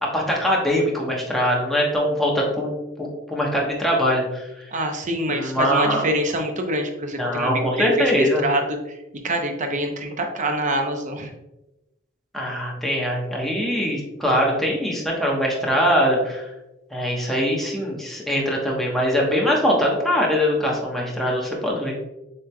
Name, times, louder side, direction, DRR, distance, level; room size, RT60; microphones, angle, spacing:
voice 1, 0.0-2.7 3.0-4.7 5.3-6.0 7.2-8.4 12.3-16.4 16.9-22.0, equal, ahead, -3 dB, 1.0 m, -22 dB
voice 2, 4.7-9.0 9.2-11.3, right 1 dB, 40° right, 4 dB, 0.7 m, -25 dB
7.1 x 3.3 x 2.2 m, 0.96 s
head